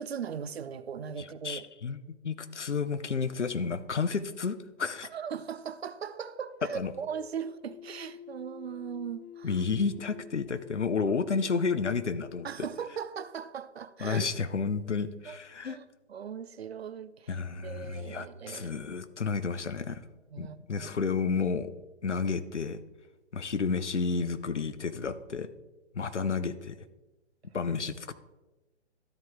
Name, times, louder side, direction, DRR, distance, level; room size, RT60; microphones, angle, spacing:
voice 1, 0.0-1.6 5.1-9.5 12.4-14.3 15.3-15.8 16.1-17.3 17.6-18.8 20.3-20.9, right 7 dB, 60° right, 0.6 m, -39 dB
voice 2, 1.2-2.0 2.2-5.1 6.7-6.9 9.4-12.5 14.0-15.8 17.3-20.0 20.4-21.7 22.0-22.8 23.3-25.5 25.9-26.8 27.5-28.1, left 5 dB, 85° left, 0.7 m, -31 dB
sound 1, 6.1-13.4, left 7 dB, 40° left, 0.6 m, -49 dB
13.0 x 4.8 x 3.5 m
figure-of-eight pair, 125°, 34 cm